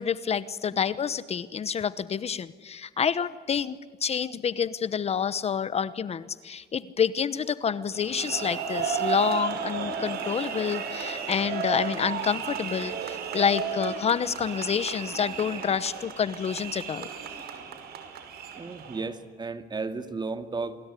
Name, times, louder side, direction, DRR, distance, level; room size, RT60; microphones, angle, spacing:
voice 1, 0.0-17.1, left 7 dB, 40° left, 16 dB, 1.0 m, -28 dB
sound 1, 7.9-19.0, right 6 dB, 65° right, 5.4 m, -33 dB
voice 2, 18.5-20.8, right 4 dB, 25° right, 10 dB, 2.1 m, -34 dB
27.5 x 22.0 x 9.9 m, 1.5 s
cardioid pair, 110°, 17 cm